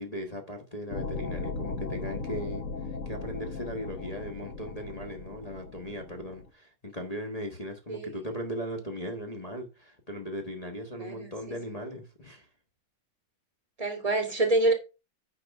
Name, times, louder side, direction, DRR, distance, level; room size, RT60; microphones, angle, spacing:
voice 1, 0.0-12.5, equal, 25° left, 1.1 m, -38 dB
sound 1, 0.9-6.5, left 3 dB, 45° left, 1.3 m, -37 dB
voice 2, 7.9-8.2 11.0-11.3 13.8-14.7, right 2 dB, 20° right, 2.3 m, -26 dB
9.3 x 4.8 x 5.3 m
omnidirectional pair, 2.1 m